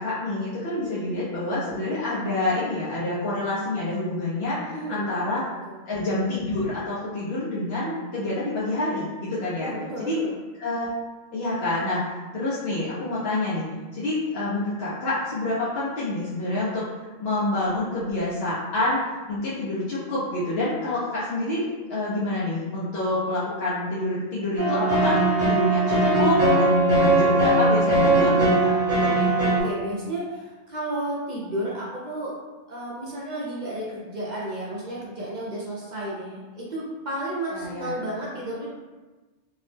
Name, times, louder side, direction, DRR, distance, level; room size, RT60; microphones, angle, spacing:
voice 1, 0.0-5.4 5.9-9.7 10.0-10.2 10.6-10.9 11.3-13.6 13.9-16.8 17.2-19.0 19.3-28.7 37.5-38.0, left 2 dB, 65° left, -9 dB, 0.9 m, -27 dB
voice 2, 0.8-1.2 4.6-5.1 5.6-5.8 9.6-10.3 29.2-32.3 32.7-38.7, right 1 dB, 50° right, -6 dB, 0.6 m, -32 dB
sound 1, 24.6-29.6, right 2 dB, 15° right, 0.7 m, -20 dB
2.8 x 2.0 x 3.2 m, 1.2 s
omnidirectional pair, 1.1 m